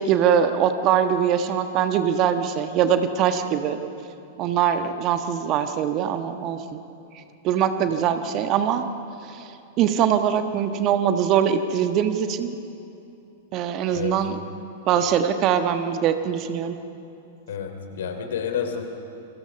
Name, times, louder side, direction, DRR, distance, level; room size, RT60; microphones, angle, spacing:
voice 1, 0.0-3.8 4.4-6.8 7.4-8.9 9.2-9.5 9.8-12.6 13.5-14.4 14.9-16.8, right 8 dB, 35° right, 8 dB, 1.3 m, -22 dB
voice 2, 17.5-18.9, left 7 dB, 60° left, 5 dB, 3.2 m, -30 dB
29.0 x 23.0 x 5.5 m, 2.7 s
figure-of-eight pair, 95°, 0 cm